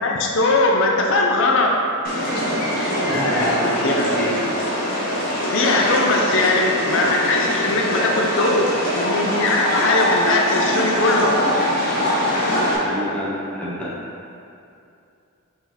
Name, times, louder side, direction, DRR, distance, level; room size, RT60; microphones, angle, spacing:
voice 1, 0.0-1.8 3.3-3.5 3.8-4.1 5.5-11.4, left 2 dB, 65° left, 0 dB, 0.4 m, -20 dB
sound 1, 2.0-12.8, equal, 45° left, 0.9 m, -23 dB
voice 2, 3.0-4.4 11.9-14.0, equal, 5° left, -6 dB, 0.6 m, -27 dB
4.0 x 3.8 x 3.0 m, 2.6 s
head